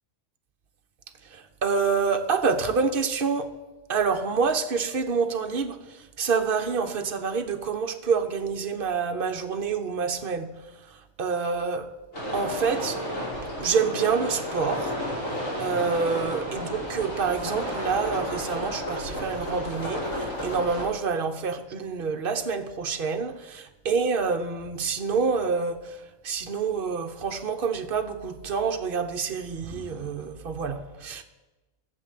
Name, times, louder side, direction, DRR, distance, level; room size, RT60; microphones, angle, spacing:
voice 1, 1.3-3.5 3.9-10.5 11.2-11.9 12.3-13.0 13.6-14.9 15.6-26.0 26.2-31.2, right 5 dB, 45° right, 6 dB, 1.1 m, -27 dB
sound 1, 12.1-20.8, equal, 70° left, 5.4 m, -32 dB
15.0 x 7.5 x 7.6 m, 1.1 s
omnidirectional pair, 1.4 m